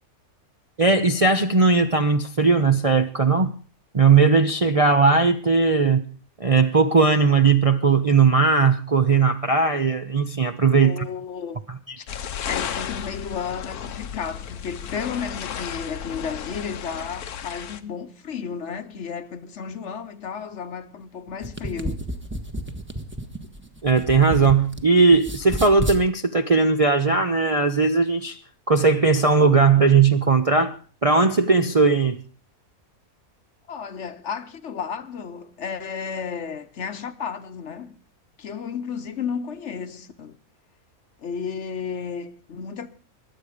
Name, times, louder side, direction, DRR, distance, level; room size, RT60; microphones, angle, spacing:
voice 1, 0.8-3.6 3.9-6.0 6.4-11.1 11.9-12.0 23.8-28.4 28.7-32.2, right 4 dB, 35° right, 0.5 m, -18 dB
voice 2, 10.8-11.6 12.0-12.1 12.5-22.0 33.7-38.0 38.4-40.4 41.2-42.9, left 6 dB, 55° left, 1.2 m, -33 dB
sound 1, 12.1-17.8, left 8 dB, 85° left, 1.4 m, -33 dB
sound 2, 21.3-24.8 25.1-26.0, right 1 dB, 10° right, 1.1 m, -31 dB
23.0 x 8.5 x 5.0 m
omnidirectional pair, 1.5 m